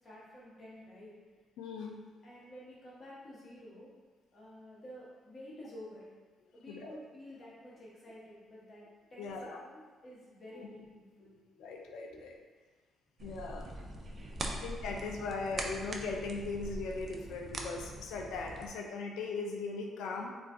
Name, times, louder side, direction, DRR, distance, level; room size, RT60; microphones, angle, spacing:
voice 1, 0.0-1.1 2.2-3.9 4.3-6.1 6.5-12.2 14.5-14.6, left 1 dB, 40° left, -7 dB, 1.1 m, -51 dB
voice 2, 1.6-2.0 6.7-7.0 9.2-9.6 10.5-10.7 11.6-12.4 13.2-13.7 14.6-20.3, left 4 dB, 85° left, 2 dB, 0.4 m, -39 dB
sound 1, 13.2-18.7, right 1 dB, 40° right, 0.4 m, -42 dB
2.4 x 2.4 x 3.5 m, 1.4 s
cardioid pair, 90°, 0 cm